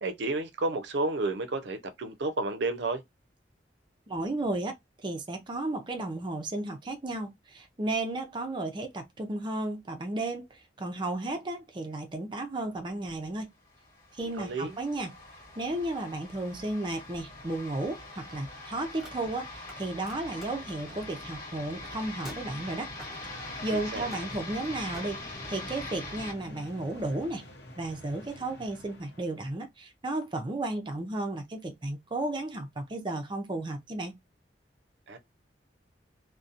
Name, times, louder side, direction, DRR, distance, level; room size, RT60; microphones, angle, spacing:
voice 1, 0.0-3.0 14.4-14.7 23.7-24.1 35.1-35.2, right 2 dB, 75° right, 0.5 m, -31 dB
voice 2, 4.1-4.7 5.0-13.5 14.2-15.1 15.6-22.9 23.3-27.4 27.8-34.2, right 2 dB, 25° right, 0.5 m, -34 dB
sound 1, 13.8-26.3, left 2 dB, 50° left, 1.2 m, -42 dB
Car, 19.0-19.8 20.0-25.1, equal, ahead, 0.9 m, -51 dB
sound 2, 23.3-29.5, left 1 dB, 65° left, 0.7 m, -49 dB
2.7 x 2.1 x 2.4 m
head